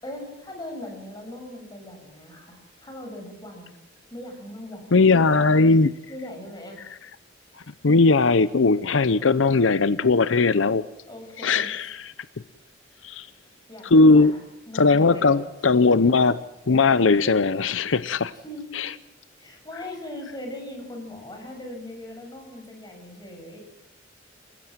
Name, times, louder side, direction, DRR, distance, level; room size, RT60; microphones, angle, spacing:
voice 1, 0.0-3.7 4.1-5.0 6.1-6.8 11.1-11.7 13.7-15.4 18.4-18.8 19.4-23.6, left 1 dB, 20° left, 2 dB, 7.4 m, -39 dB
voice 2, 4.9-5.9 7.8-10.8 11.4-12.1 13.0-13.3 13.8-14.3 14.7-18.3 18.7-18.9, left 3 dB, 80° left, 16 dB, 0.7 m, -19 dB
28.5 x 16.0 x 7.5 m, 0.90 s
head